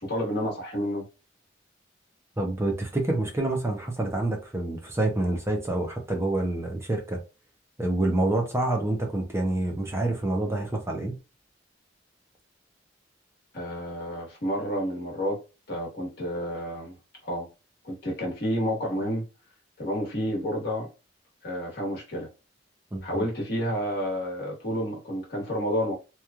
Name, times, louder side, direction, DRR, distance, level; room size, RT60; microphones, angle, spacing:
voice 1, 0.1-1.0 13.5-15.4 15.7-16.9 17.2-17.5 17.8-19.3 19.8-20.9 21.4-22.3 23.0-25.9, equal, 60° left, 1.2 m, -30 dB
voice 2, 2.4-7.2 7.8-11.2 22.9-23.2, right 2 dB, 15° right, 0.5 m, -27 dB
2.9 x 2.3 x 2.3 m
head